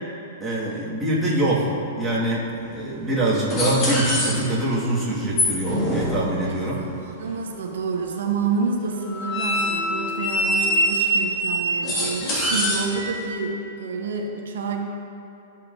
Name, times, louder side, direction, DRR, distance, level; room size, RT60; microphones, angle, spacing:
voice 1, 0.4-1.7 2.0-6.8, right 1 dB, 5° right, -10 dB, 1.8 m, -24 dB
sound 1, 2.7-2.8 3.5-4.8 5.3-6.7 9.0-13.2, equal, 30° left, 1.7 m, -24 dB
voice 2, 6.4-14.8, right 4 dB, 85° right, 1 dB, 0.9 m, -29 dB
13.0 x 5.6 x 2.6 m, 2.9 s
hypercardioid pair, 145°, 0 cm